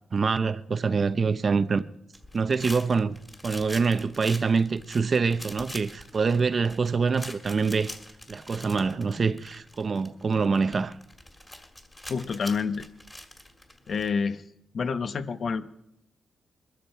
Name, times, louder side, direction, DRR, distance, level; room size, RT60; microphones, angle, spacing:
voice 1, 0.1-1.8 2.3-3.2 3.4-7.9 8.3-11.0, right 5 dB, 40° right, 0.6 m, -25 dB
sound 1, 2.1-14.1, left 1 dB, 15° left, 2.0 m, -45 dB
voice 2, 12.1-12.8 13.9-14.4 14.7-15.7, left 5 dB, 55° left, 0.8 m, -28 dB
21.5 x 13.5 x 4.5 m
cardioid pair, 110°, 0 cm